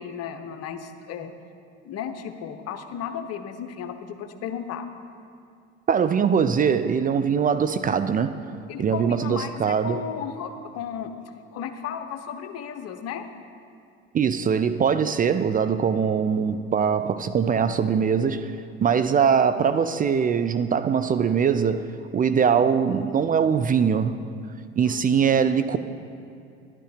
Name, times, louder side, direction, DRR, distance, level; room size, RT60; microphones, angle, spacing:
voice 1, 0.0-1.3 1.8-4.9 8.7-11.1 11.5-13.3 22.5-22.7 24.8-25.1, left 8 dB, 55° left, 1.0 m, -34 dB
voice 2, 5.9-8.4 8.8-10.0 14.1-18.6 18.8-21.9 22.1-24.2 24.8-25.8, right 7 dB, 30° right, 0.4 m, -22 dB
11.5 x 10.5 x 5.1 m
hypercardioid pair, 70°, 30 cm